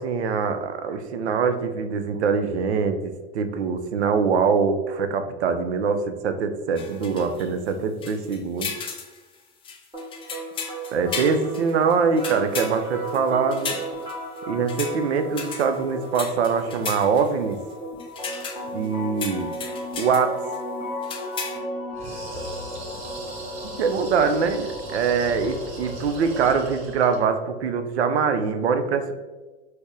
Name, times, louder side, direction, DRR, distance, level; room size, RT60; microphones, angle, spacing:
voice 1, 0.0-8.7 10.9-13.8 14.5-17.6 18.7-19.5 20.0-20.4 23.8-29.1, right 5 dB, 75° right, 8 dB, 0.5 m, -23 dB
sound 1, 6.8-7.7 8.0-9.2 9.6-14.4 14.7-15.0 15.4-17.5 18.0-18.9 19.2-20.3 20.5-20.6 21.0-21.6, left 5 dB, 15° left, 0.4 m, -35 dB
sound 2, 9.9-25.9, equal, 10° right, 1.3 m, -35 dB
sound 3, 21.9-27.3, right 1 dB, 55° right, 1.2 m, -37 dB
4.1 x 2.1 x 3.2 m, 1.2 s
hypercardioid pair, 90°, 33 cm